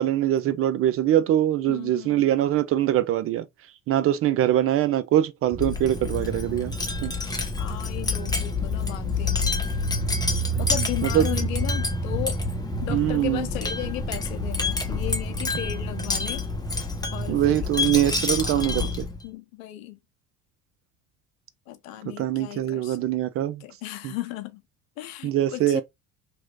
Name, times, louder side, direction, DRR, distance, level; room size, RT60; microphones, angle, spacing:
voice 1, 0.0-3.4 3.9-6.7 7.0-7.1 11.0-11.2 12.9-13.5 17.3-19.1 22.2-23.6 24.0-24.1 25.2-25.8, right 12 dB, 35° right, 0.4 m, -23 dB
voice 2, 1.7-2.3 7.6-9.7 10.6-12.4 12.8-16.4 17.1-17.7 18.2-18.9 19.2-20.0 21.7-23.1 23.6-24.6 25.0-25.8, left 14 dB, 75° left, 0.7 m, -35 dB
Wind chime, 5.5-19.2, left 2 dB, 10° left, 0.8 m, -27 dB
2.9 x 2.6 x 3.8 m
hypercardioid pair, 65°, 41 cm